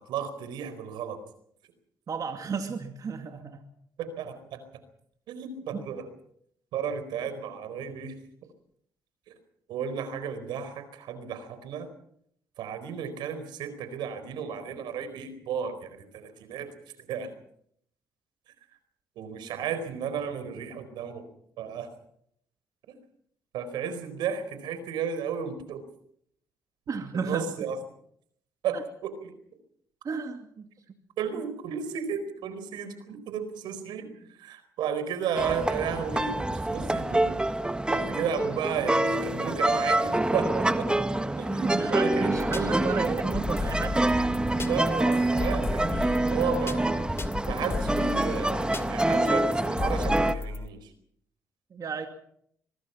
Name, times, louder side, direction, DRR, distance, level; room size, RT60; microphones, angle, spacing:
voice 1, 0.1-1.2 4.0-4.6 5.3-6.0 6.7-8.1 9.7-11.9 12.6-15.9 16.1-16.7 17.1-17.3 19.2-21.3 21.6-21.9 23.5-25.8 27.2-27.8 28.6-29.1 31.2-34.1 34.4-37.3 37.9-40.9 41.4-41.6 41.9-42.5 42.7-42.9 44.6-47.0 47.5-50.8, right 7 dB, 85° right, 11 dB, 4.4 m, -33 dB
voice 2, 2.1-3.6 5.7-5.8 26.9-27.5 28.7-28.8 30.0-30.7 41.6-44.0 51.7-52.1, right 5 dB, 50° right, 5 dB, 2.4 m, -33 dB
sound 1, 35.3-50.3, right 1 dB, 10° right, 1.5 m, -26 dB
sound 2, 42.3-50.7, left 3 dB, 35° left, 2.5 m, -35 dB
24.0 x 21.5 x 5.8 m, 0.69 s
cardioid pair, 70°, 8 cm